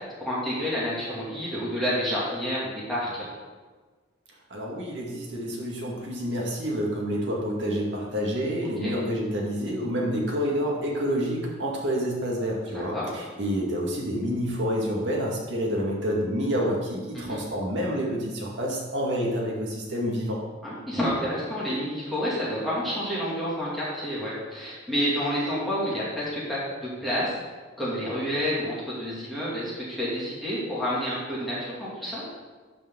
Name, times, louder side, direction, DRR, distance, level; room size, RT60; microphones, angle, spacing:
voice 1, 0.2-3.1 8.8-8.9 12.6-13.1 17.1-17.4 20.6-27.4 27.8-32.2, equal, ahead, -9 dB, 2.5 m, -29 dB
voice 2, 4.5-20.4, equal, 70° right, -2 dB, 2.1 m, -28 dB
12.0 x 5.0 x 3.9 m, 1.4 s
head